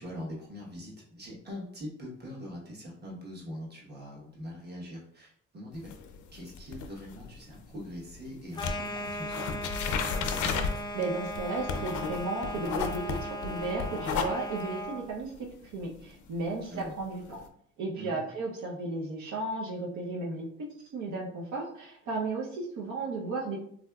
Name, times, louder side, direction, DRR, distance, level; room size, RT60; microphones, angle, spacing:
voice 1, 0.0-5.9 6.3-9.8 16.7-16.9 17.9-18.2, equal, 35° right, -3 dB, 1.1 m, -42 dB
sound 1, 5.7-8.3 8.5-17.5, left 6 dB, 80° left, 0.5 m, -34 dB
sound 2, 8.5-15.1, equal, 15° left, 0.4 m, -38 dB
voice 2, 10.9-15.5 15.7-17.4 17.8-23.6, right 3 dB, 75° right, -3 dB, 0.7 m, -34 dB
3.5 x 2.6 x 2.3 m, 0.65 s
cardioid pair, 90°, 30 cm